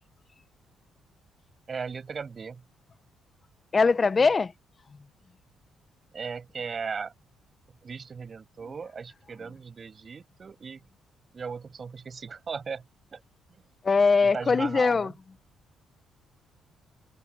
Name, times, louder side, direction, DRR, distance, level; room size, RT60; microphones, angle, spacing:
voice 1, 1.7-2.6 6.1-7.1 7.8-10.8 11.3-12.8 13.1-13.2 14.2-15.1, right 5 dB, 40° right, 7.4 m, -37 dB
voice 2, 3.7-4.5 13.8-15.1, left 4 dB, 35° left, 0.7 m, -21 dB
cardioid pair, 90°, 0 cm